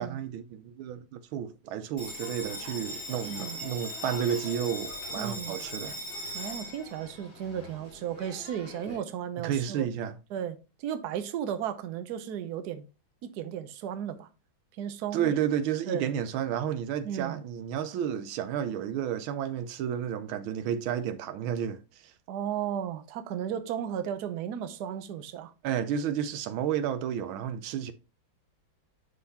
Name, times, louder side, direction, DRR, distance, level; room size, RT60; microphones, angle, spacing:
voice 1, 0.0-6.0 8.9-9.0 9.4-10.2 15.1-21.8 25.6-27.9, right 9 dB, 90° right, 1.5 m, -31 dB
Bell, 2.0-9.0, left 1 dB, 55° left, 3.3 m, -40 dB
voice 2, 3.2-3.6 5.2-5.6 6.3-9.9 10.3-10.6 10.8-12.8 13.2-14.3 14.8-15.4 15.9-16.1 17.0-17.4 22.3-25.5, right 9 dB, 65° right, 1.1 m, -34 dB
11.0 x 3.8 x 2.8 m
omnidirectional pair, 2.2 m